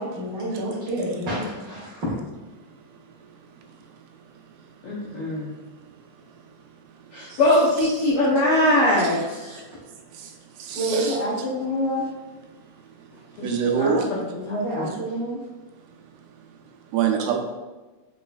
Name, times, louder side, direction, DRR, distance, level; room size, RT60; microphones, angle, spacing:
voice 1, 0.0-2.2 10.7-12.0 14.5-15.4, equal, 55° right, -7 dB, 1.3 m, -27 dB
voice 2, 4.8-5.5 7.1-9.6 13.4-13.5 13.8-14.2 14.4-14.8, left 1 dB, 75° left, -7 dB, 1.3 m, -22 dB
voice 3, 10.6-11.2 13.4-14.1 16.9-17.4, right 7 dB, 85° right, 2 dB, 2.1 m, -24 dB
5.4 x 4.0 x 2.3 m, 1.2 s
omnidirectional pair, 3.6 m